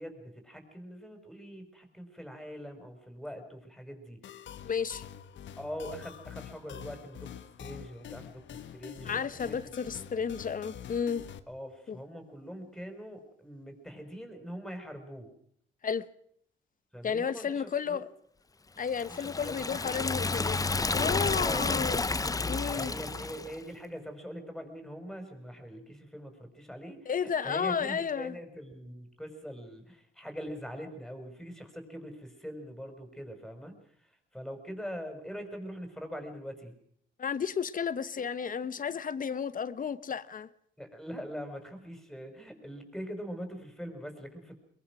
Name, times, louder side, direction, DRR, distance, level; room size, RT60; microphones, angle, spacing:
voice 1, 0.0-4.4 5.6-7.3 7.6-9.6 9.9-10.0 11.5-15.3 16.9-18.0 19.1-20.3 21.4-21.6 22.7-36.7 40.8-44.5, equal, ahead, 5.8 m, -43 dB
sound 1, 4.2-11.4, left 9 dB, 70° left, 1.5 m, -46 dB
voice 2, 4.6-5.0 9.1-11.2 11.9-12.0 15.8-16.0 17.0-18.1 18.8-20.6 20.9-22.0 22.4-22.9 27.1-28.3 37.2-40.5, left 7 dB, 45° left, 1.2 m, -32 dB
Liquid, 18.9-23.6, left 3 dB, 15° left, 0.8 m, -31 dB
23.0 x 22.5 x 6.2 m
cardioid pair, 90°, 20 cm